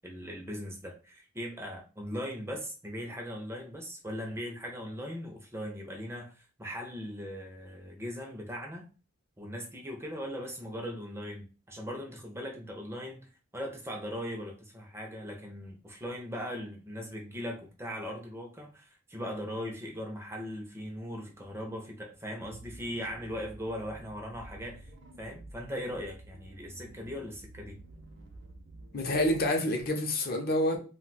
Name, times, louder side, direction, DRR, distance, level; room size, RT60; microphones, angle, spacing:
voice 1, 0.0-8.9 9.4-24.9 25.2-27.8, equal, 10° right, 0.5 m, -39 dB
sound 1, 22.4-29.5, right 2 dB, 55° right, 0.6 m, -50 dB
voice 2, 28.9-30.8, left 1 dB, 45° left, 0.6 m, -28 dB
2.4 x 2.2 x 3.9 m
head